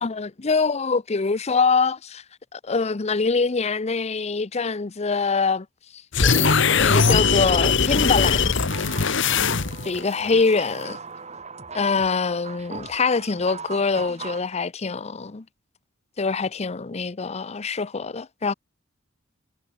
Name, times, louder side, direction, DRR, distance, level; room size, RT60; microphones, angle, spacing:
voice 1, 0.0-2.2 2.5-5.7 6.2-8.5 9.8-11.0 11.7-15.4 16.2-18.5, left 4 dB, 35° left, 0.7 m, -24 dB
sound 1, 6.1-10.0, left 5 dB, 65° left, 1.5 m, -20 dB
sound 2, 6.5-14.4, right 5 dB, 35° right, 4.1 m, -39 dB
head